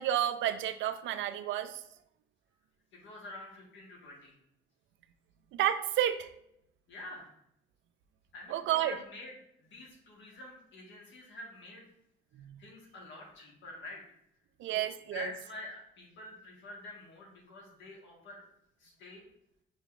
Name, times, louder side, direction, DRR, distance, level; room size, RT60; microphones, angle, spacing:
voice 1, 0.0-1.8 5.5-6.3 8.5-9.0 12.4-12.6 14.6-15.3, right 11 dB, 75° right, 11 dB, 0.4 m, -31 dB
voice 2, 2.9-4.3 6.9-7.3 8.3-9.3 9.6-11.9 12.6-14.0 14.6-14.8 15.1-18.4 18.8-19.2, left 2 dB, 70° left, -2 dB, 1.4 m, -47 dB
6.0 x 3.0 x 2.5 m, 0.76 s
cardioid pair, 90°, 20 cm